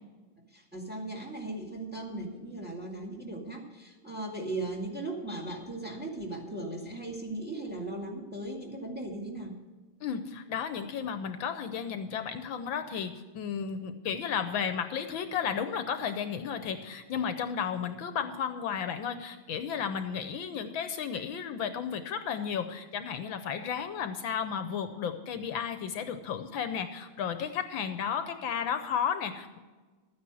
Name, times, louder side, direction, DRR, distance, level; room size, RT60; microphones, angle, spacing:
voice 1, 0.5-9.5, right 2 dB, 5° right, 2 dB, 1.9 m, -37 dB
voice 2, 10.0-29.6, left 7 dB, 70° left, 9 dB, 1.5 m, -33 dB
13.0 x 9.6 x 6.2 m, 1.3 s
omnidirectional pair, 2.3 m